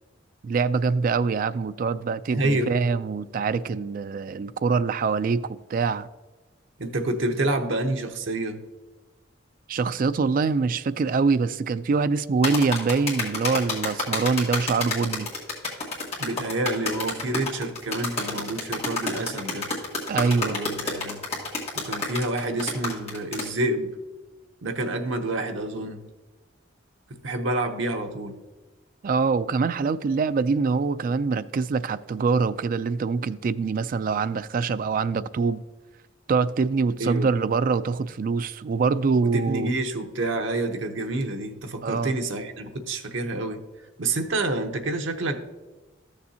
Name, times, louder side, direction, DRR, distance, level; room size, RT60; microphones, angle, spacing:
voice 1, 0.4-6.1 9.7-15.3 20.1-20.6 29.0-35.6 36.3-39.7 41.8-42.1, right 4 dB, 45° right, 0.3 m, -24 dB
voice 2, 2.3-2.8 6.8-8.6 16.2-19.7 20.5-21.2 21.7-23.9 24.6-26.0 27.2-28.3 37.0-37.3 39.2-43.6 44.0-45.5, right 2 dB, 80° right, 0.9 m, -28 dB
sound 1, 12.4-23.5, left 3 dB, 35° left, 1.7 m, -29 dB
13.5 x 6.8 x 2.8 m
head